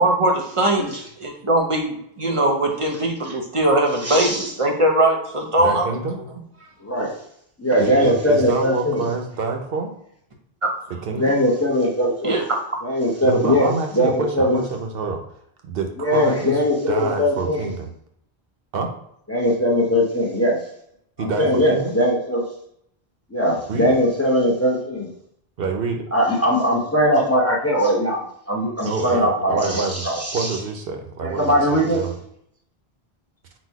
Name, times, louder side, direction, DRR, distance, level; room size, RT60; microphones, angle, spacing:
voice 1, 0.0-0.9 1.2-5.9 10.6-10.7 12.2-12.4, right 1 dB, 35° right, 1 dB, 0.7 m, -20 dB
voice 2, 4.0-4.5 6.8-7.1 7.6-9.0 11.2-12.4 12.8-14.6 16.0-17.6 19.3-20.6 21.4-22.5 23.3-25.1 26.1-30.5 31.2-32.0, equal, 15° left, -2 dB, 0.7 m, -20 dB
voice 3, 5.6-6.2 7.8-10.0 11.0-11.4 13.2-15.2 15.6-16.6 16.9-17.9 18.7-18.9 21.2-21.9 23.7-24.0 25.6-26.0 28.8-30.1 30.3-32.1, right 4 dB, 70° right, 3 dB, 0.8 m, -27 dB
4.1 x 2.2 x 4.5 m, 0.71 s
omnidirectional pair, 1.0 m